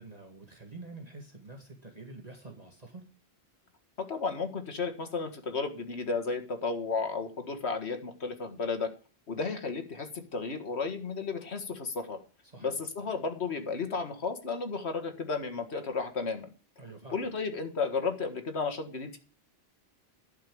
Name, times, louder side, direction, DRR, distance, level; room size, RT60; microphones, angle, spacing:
voice 1, 0.0-3.0 12.4-12.8 16.8-17.3, right 3 dB, 35° right, 2 dB, 2.0 m, -47 dB
voice 2, 4.0-8.9 9.3-12.2 12.6-16.5 17.1-19.2, left 4 dB, 75° left, 6 dB, 2.0 m, -33 dB
11.5 x 5.8 x 8.6 m, 0.37 s
omnidirectional pair, 1.1 m